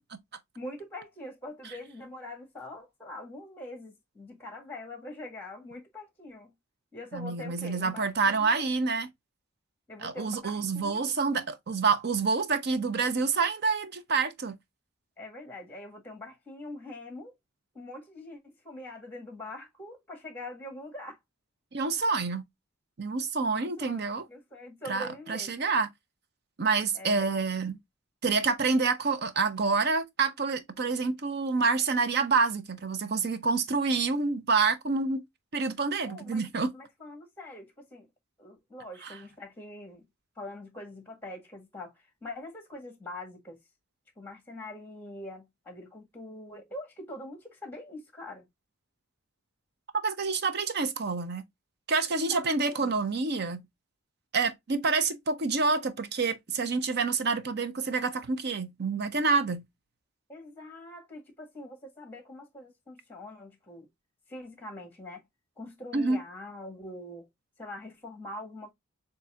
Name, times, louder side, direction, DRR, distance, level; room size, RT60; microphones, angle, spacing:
voice 1, 0.5-6.5 6.9-8.7 9.9-11.1 15.2-17.3 17.7-21.2 23.4-25.5 26.9-27.4 36.0-38.1 38.4-40.1 40.4-43.6 44.2-48.5 52.1-52.9 60.3-63.9 64.3-65.2 65.6-67.3 67.6-68.7, left 1 dB, 10° left, 1.5 m, -44 dB
voice 2, 7.1-9.1 10.0-14.6 21.7-22.4 23.0-24.2 24.9-25.9 26.6-27.8 28.2-35.2 35.5-36.7 39.0-39.1 50.0-51.4 51.9-53.6 54.3-59.6 65.9-66.2, right 4 dB, 55° right, 0.7 m, -27 dB
6.9 x 2.7 x 2.4 m
head